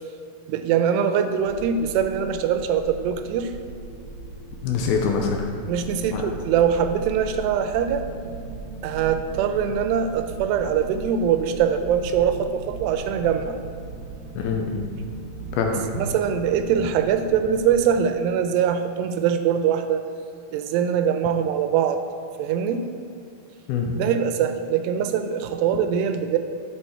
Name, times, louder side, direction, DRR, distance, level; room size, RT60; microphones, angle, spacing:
voice 1, 0.5-3.5 5.7-8.1 8.8-13.6 16.0-20.1 20.5-22.0 22.4-22.9 24.0-26.4, right 8 dB, 85° right, 8 dB, 2.7 m, -23 dB
sound 1, 1.4-17.9, right 3 dB, 65° right, 2.1 m, -38 dB
voice 2, 4.6-5.5 6.1-6.3 14.4-14.9 15.5-15.8 23.7-23.9, left 5 dB, 80° left, 2 dB, 2.4 m, -24 dB
7.9 x 7.8 x 4.4 m, 2.5 s
omnidirectional pair, 4.7 m